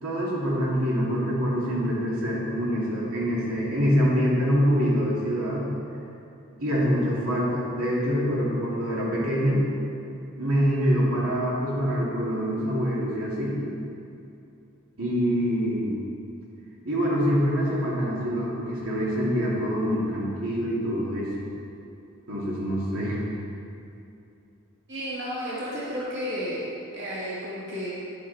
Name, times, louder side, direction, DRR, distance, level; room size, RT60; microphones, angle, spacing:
voice 1, 0.0-5.6 6.6-9.6 10.4-13.6 15.0-16.0 16.9-21.5 22.3-23.2, equal, 85° right, -6 dB, 2.6 m, -25 dB
voice 2, 24.9-26.6 26.9-27.9, equal, 55° right, -8 dB, 2.1 m, -32 dB
10.5 x 8.4 x 4.1 m, 2.7 s
head